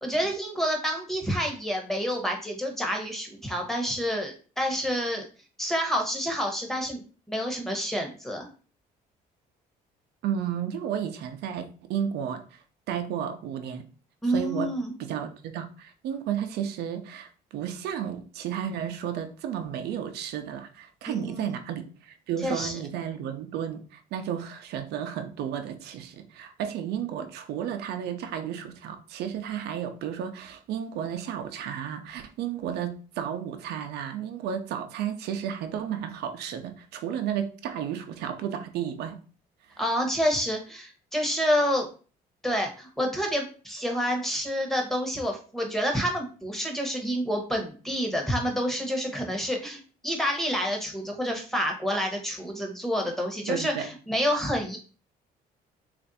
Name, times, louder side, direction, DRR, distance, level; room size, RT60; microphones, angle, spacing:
voice 1, 0.0-5.2 5.6-7.0 7.3-8.5 14.2-14.9 21.1-21.6 22.4-22.8 39.8-41.9 42.4-54.8, equal, ahead, 1 dB, 1.0 m, -28 dB
voice 2, 10.2-13.9 14.3-14.7 15.0-39.2 53.5-53.9, right 9 dB, 75° right, 7 dB, 0.6 m, -33 dB
3.3 x 2.5 x 4.0 m, 0.37 s
cardioid pair, 110°, 17 cm